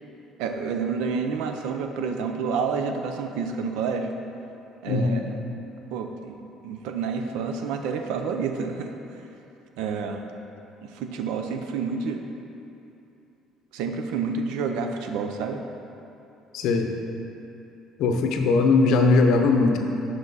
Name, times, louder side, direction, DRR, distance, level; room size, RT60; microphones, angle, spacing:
voice 1, 0.4-4.1 4.8-5.3 5.9-8.9 9.8-10.2 10.8-12.2 13.7-15.6, right 5 dB, 90° right, 5 dB, 0.6 m, -29 dB
voice 2, 4.9-5.2 16.5-16.9 18.0-19.8, left 3 dB, 60° left, 4 dB, 0.6 m, -20 dB
7.4 x 5.9 x 4.0 m, 2.8 s
cardioid pair, 180°, 0 cm